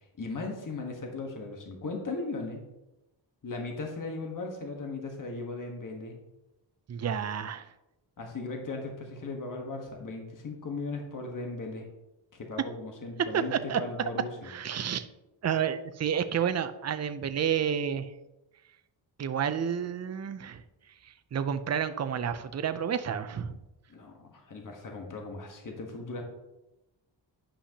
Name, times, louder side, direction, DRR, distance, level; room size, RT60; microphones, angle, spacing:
voice 1, 0.2-2.6 3.4-6.2 8.2-11.9 12.3-14.5 23.9-26.2, left 3 dB, 45° left, 2 dB, 1.4 m, -37 dB
voice 2, 6.9-7.7 13.3-13.8 14.4-15.1 15.4-18.1 19.2-20.6 21.3-23.6, right 8 dB, 35° right, 10 dB, 0.5 m, -30 dB
10.0 x 5.6 x 2.9 m, 0.96 s
wide cardioid pair, 95°, 45 cm